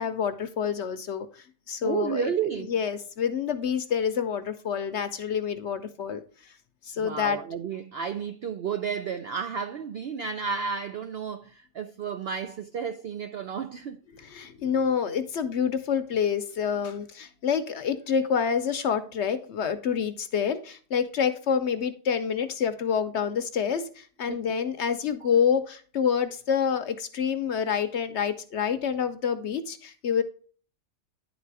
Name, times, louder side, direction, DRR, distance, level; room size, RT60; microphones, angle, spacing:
voice 1, 0.0-2.3 2.6-6.2 6.8-7.4 14.1-30.2, left 7 dB, 60° left, 0.8 m, -27 dB
voice 2, 1.8-2.7 7.0-14.0 24.3-24.4, right 6 dB, 70° right, 0.6 m, -32 dB
10.0 x 4.1 x 4.6 m
omnidirectional pair, 1.5 m